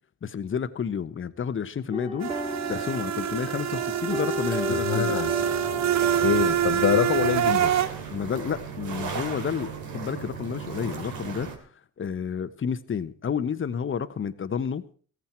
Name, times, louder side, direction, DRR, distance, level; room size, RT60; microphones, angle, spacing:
voice 1, 0.2-2.3 2.7-5.2 8.1-11.5 12.0-14.8, left 7 dB, 35° left, 13 dB, 1.1 m, -30 dB
sound 1, 1.9-7.9, left 2 dB, 15° right, 2.7 m, -35 dB
sound 2, 2.2-7.9, right 11 dB, 50° right, 0.8 m, -26 dB
voice 2, 4.7-5.3 6.2-7.8, left 12 dB, 55° left, 8 dB, 0.8 m, -25 dB
sound 3, 5.2-11.6, right 6 dB, 75° right, 3.1 m, -36 dB
15.5 x 14.5 x 4.5 m, 0.43 s
cardioid pair, 85°, 36 cm